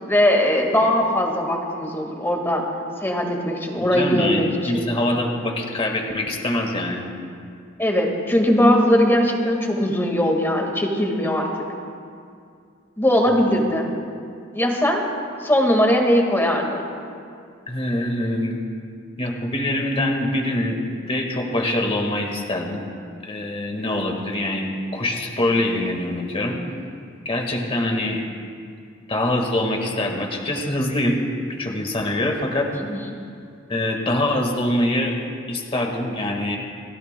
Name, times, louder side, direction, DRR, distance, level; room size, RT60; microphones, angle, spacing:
voice 1, 0.1-2.6 3.0-4.9 7.8-11.6 13.0-13.9 14.5-15.0 15.4-16.9 32.8-33.2, equal, 10° left, 1 dB, 1.7 m, -20 dB
voice 2, 3.8-7.0 17.7-18.6 19.2-20.8 21.1-22.8 23.2-26.6 27.3-28.2 29.1-31.3 31.6-32.7 33.7-35.2 35.5-36.6, left 1 dB, 30° left, 2 dB, 1.7 m, -24 dB
29.5 x 15.0 x 2.2 m, 2.3 s
head